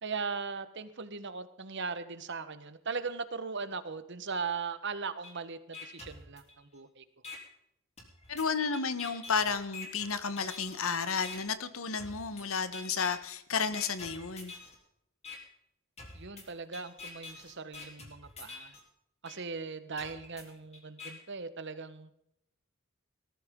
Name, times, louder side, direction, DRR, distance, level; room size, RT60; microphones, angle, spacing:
voice 1, 0.0-7.0 16.1-18.7 19.2-22.1, right 5 dB, 60° right, 11 dB, 1.3 m, -39 dB
sound 1, 5.2-5.3 5.7-6.8 7.2-7.4 8.0-10.8 11.2-11.4 12.0-12.4 12.7-13.3 13.7-14.8 15.2-15.4 16.0-18.8 19.2-19.4 20.0-21.1, left 3 dB, 30° left, 3.4 m, -46 dB
voice 2, 8.3-14.5, left 5 dB, 75° left, 12 dB, 1.2 m, -32 dB
18.5 x 14.0 x 3.8 m, 0.78 s
head